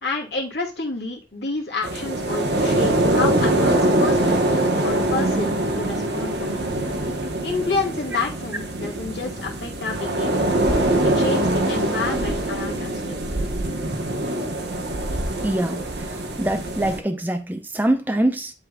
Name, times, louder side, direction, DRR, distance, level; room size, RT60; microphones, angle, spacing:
voice 1, 0.0-6.7 6.9-7.2 7.4-10.6 11.0-13.2, left 3 dB, 70° left, 2.3 m, -29 dB
sound 1, 1.8-17.0, right 1 dB, 65° right, 1.1 m, -23 dB
voice 2, 15.4-15.8 16.4-18.5, right 1 dB, 10° right, 0.7 m, -23 dB
11.0 x 3.8 x 2.3 m
head